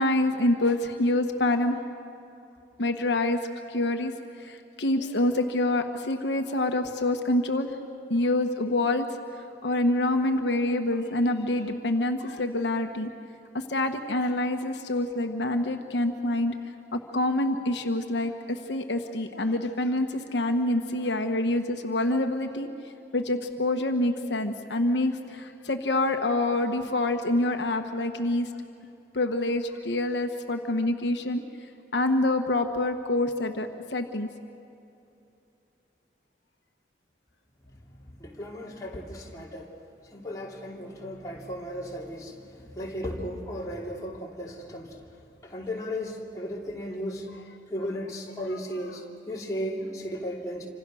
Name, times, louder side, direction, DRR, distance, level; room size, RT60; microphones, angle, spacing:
voice 1, 0.0-1.8 2.8-4.1 4.4-7.7 8.1-9.1 9.6-13.1 13.5-16.5 16.9-22.7 23.1-28.5 29.1-31.4 31.9-34.3 47.3-47.6 48.5-48.9, left 1 dB, 80° left, 5 dB, 1.3 m, -26 dB
voice 2, 38.2-39.7 40.1-45.0 45.4-47.3 47.7-50.7, equal, 20° left, -3 dB, 3.0 m, -35 dB
28.0 x 25.5 x 6.4 m, 2.7 s
head